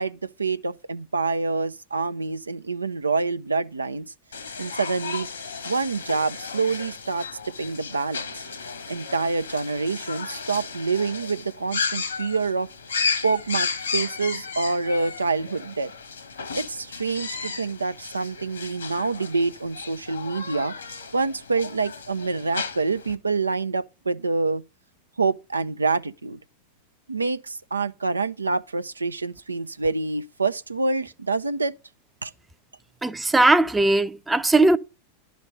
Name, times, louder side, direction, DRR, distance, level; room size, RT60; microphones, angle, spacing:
voice 1, 0.0-4.1 4.6-5.3 5.6-7.3 7.6-8.3 8.9-12.7 13.2-15.9 16.5-20.7 21.1-24.6 25.2-26.4 27.1-31.7 32.2-32.3, right 4 dB, 80° right, 0.5 m, -26 dB
sound 1, 4.3-23.1, left 5 dB, 70° left, 1.3 m, -34 dB
voice 2, 33.0-34.8, right 2 dB, 10° right, 0.6 m, -19 dB
11.5 x 5.1 x 6.7 m
figure-of-eight pair, 90°, 0 cm